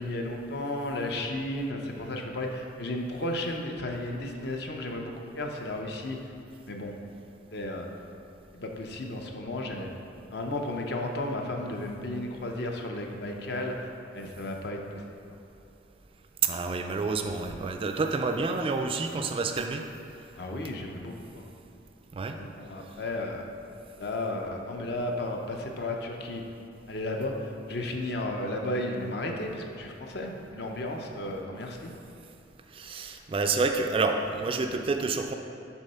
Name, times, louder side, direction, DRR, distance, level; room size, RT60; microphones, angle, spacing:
voice 1, 0.0-6.2 6.7-6.9 7.5-8.0 8.5-9.9 10.3-13.9 14.1-15.0 20.3-21.5 22.4-23.4 24.0-26.4 26.9-31.9, left 1 dB, 60° left, 2 dB, 0.7 m, -33 dB
voice 2, 16.4-19.8 22.1-22.4 32.7-35.3, right 4 dB, 30° right, 5 dB, 0.3 m, -28 dB
7.1 x 3.6 x 5.5 m, 2.8 s
head